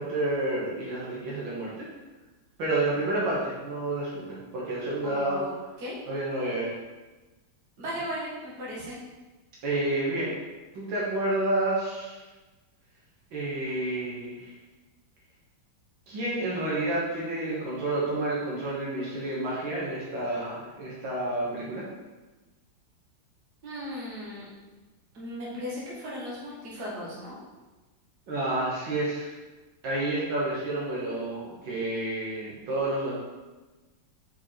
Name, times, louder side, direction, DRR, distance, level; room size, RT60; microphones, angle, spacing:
voice 1, 0.0-1.9 2.6-5.4 6.1-6.7 9.6-10.3 10.8-12.2 13.3-14.5 16.1-21.8 28.3-29.3 29.8-33.1, right 2 dB, 80° right, -6 dB, 2.1 m, -29 dB
voice 2, 5.0-6.0 7.8-9.0 23.6-24.5 25.1-27.4, equal, 55° right, -6 dB, 2.1 m, -36 dB
5.3 x 4.5 x 4.3 m, 1.2 s
omnidirectional pair, 2.1 m